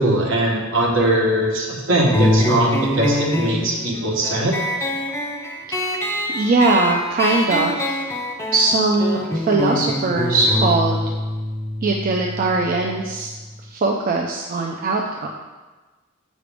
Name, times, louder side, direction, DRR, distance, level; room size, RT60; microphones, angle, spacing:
voice 1, 0.0-4.5, right 1 dB, 65° right, -1 dB, 1.2 m, -20 dB
sound 1, 2.1-13.2, left 1 dB, 15° left, 0.6 m, -25 dB
voice 2, 6.3-8.0 8.5-11.0 11.8-13.3 13.7-15.3, right 3 dB, 45° right, 0 dB, 0.4 m, -20 dB
6.4 x 4.9 x 3.4 m, 1.3 s
head